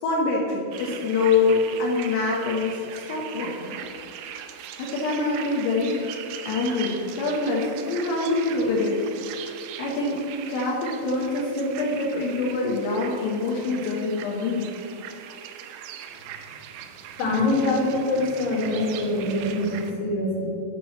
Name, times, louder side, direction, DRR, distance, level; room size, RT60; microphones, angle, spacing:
voice 1, 0.0-3.8 4.8-9.0 9.3-14.7, left 3 dB, 90° left, -3 dB, 3.9 m, -25 dB
sound 1, 0.7-19.9, right 9 dB, 85° right, 2.5 m, -40 dB
voice 2, 17.2-20.5, left 2 dB, 75° left, -2 dB, 4.4 m, -24 dB
7.7 x 7.6 x 7.6 m, 2.5 s
omnidirectional pair, 5.6 m